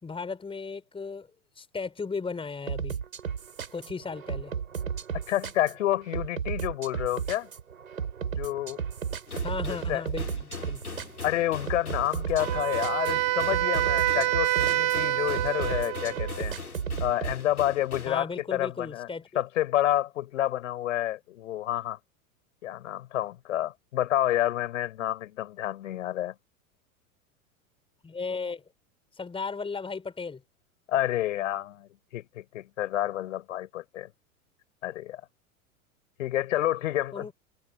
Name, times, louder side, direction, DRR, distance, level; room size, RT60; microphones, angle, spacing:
voice 1, 0.0-1.3 1.6-3.0 3.7-4.5 9.4-10.8 18.1-19.4 28.0-28.6 29.1-30.4 37.1-37.3, left 4 dB, 10° left, 5.0 m, -35 dB
sound 1, 2.7-17.4, right 7 dB, 70° right, 7.5 m, -34 dB
voice 2, 5.3-7.5 8.4-8.8 9.9-10.0 11.2-16.6 17.0-19.1 19.3-22.0 22.6-26.3 30.9-34.1 34.8-35.2 36.2-37.3, left 13 dB, 60° left, 6.5 m, -29 dB
sound 2, 9.3-18.2, left 4 dB, 80° left, 3.0 m, -41 dB
Wind instrument woodwind instrument, 12.4-16.4, right 19 dB, 35° right, 2.7 m, -27 dB
figure-of-eight pair, 90°, 43 cm